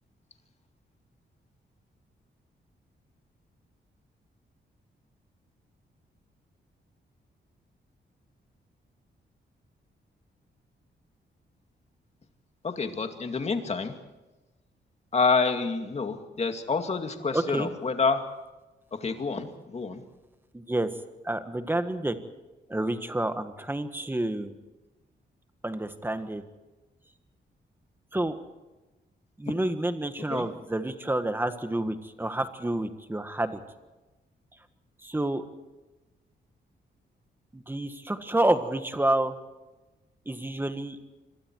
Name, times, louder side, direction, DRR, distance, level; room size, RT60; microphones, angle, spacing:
voice 1, 12.6-14.0 15.1-18.2 19.0-20.0 30.3-30.5, left 4 dB, 35° left, 6 dB, 2.4 m, -28 dB
voice 2, 17.3-17.7 20.5-20.9 21.2-22.2 22.7-24.5 25.6-26.4 28.1-28.4 29.4-33.6 35.0-35.4 37.5-39.4 40.3-41.0, right 1 dB, 10° right, 9 dB, 1.6 m, -29 dB
27.0 x 23.0 x 4.7 m, 1.1 s
wide cardioid pair, 135°, 19 cm